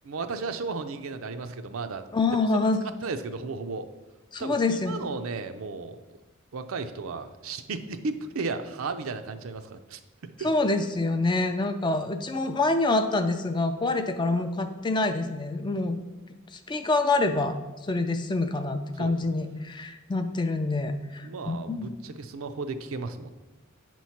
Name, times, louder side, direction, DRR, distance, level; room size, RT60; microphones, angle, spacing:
voice 1, 0.0-2.0 3.0-3.9 4.4-6.0 6.5-10.0 10.4-10.5 19.0-19.2 21.2-23.3, right 4 dB, 75° right, 8 dB, 0.5 m, -34 dB
voice 2, 2.1-2.9 4.3-5.1 10.4-16.0 16.5-17.6 17.8-22.0, left 2 dB, 20° left, 8 dB, 0.4 m, -26 dB
8.5 x 3.1 x 5.7 m, 1.2 s
head